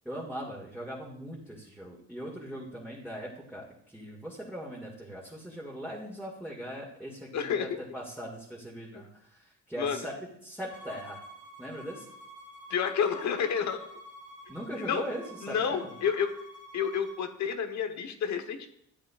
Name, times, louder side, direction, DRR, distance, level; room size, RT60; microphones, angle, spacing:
voice 1, 0.0-10.1 10.4-11.2 11.6-12.1 14.5-15.9, equal, 5° right, -6 dB, 2.1 m, -40 dB
voice 2, 7.3-7.8 8.9-9.0 9.8-10.0 12.7-13.8 14.8-15.0 15.4-16.4 16.7-18.7, left 7 dB, 70° left, 7 dB, 1.1 m, -30 dB
Bowed string instrument, 10.7-17.2, equal, 55° right, 2.2 m, -49 dB
11.0 x 8.1 x 2.4 m, 0.73 s
cardioid pair, 90°, 30 cm